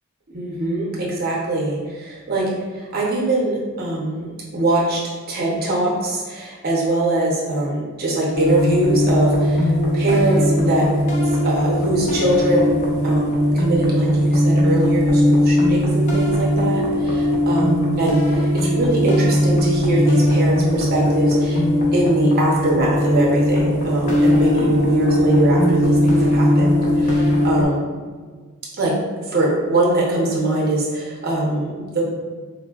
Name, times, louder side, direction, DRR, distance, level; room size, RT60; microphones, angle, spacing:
voice 1, 0.3-2.5 2.7-5.0 5.3-10.9 11.4-21.6 21.9-27.9 28.8-28.9 29.3-32.0, right 1 dB, 45° right, -4 dB, 0.6 m, -22 dB
sound 1, 8.3-27.6, left 1 dB, 35° left, 0.4 m, -19 dB
3.8 x 2.1 x 2.2 m, 1.5 s
head